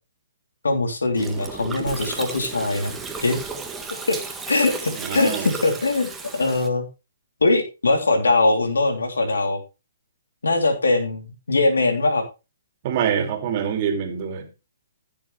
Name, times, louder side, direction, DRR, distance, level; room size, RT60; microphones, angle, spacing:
voice 1, 0.6-3.4 4.1-4.2 4.5-6.8 7.4-9.6 10.4-12.2, left 2 dB, 90° left, 3.1 m, -21 dB
Gurgling, 1.2-6.7, right 4 dB, 10° right, 1.5 m, -34 dB
voice 2, 4.9-5.5 12.8-14.5, right 8 dB, 40° right, 2.6 m, -25 dB
15.5 x 7.0 x 3.2 m
hypercardioid pair, 145°, 0 cm